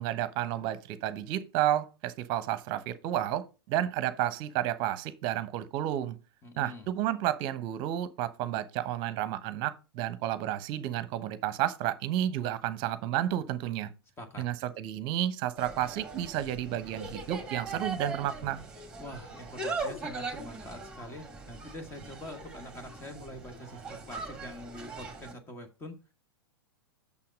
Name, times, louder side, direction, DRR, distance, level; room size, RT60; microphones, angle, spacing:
voice 1, 0.0-6.2 6.6-13.9 14.4-18.6, right 12 dB, 35° right, 0.9 m, -31 dB
voice 2, 6.4-6.9 14.2-14.4 19.0-25.9, left 1 dB, 20° left, 1.5 m, -45 dB
Insect, 15.6-25.3, right 3 dB, 5° right, 2.1 m, -40 dB
6.7 x 5.7 x 5.2 m
figure-of-eight pair, 100°, 13 cm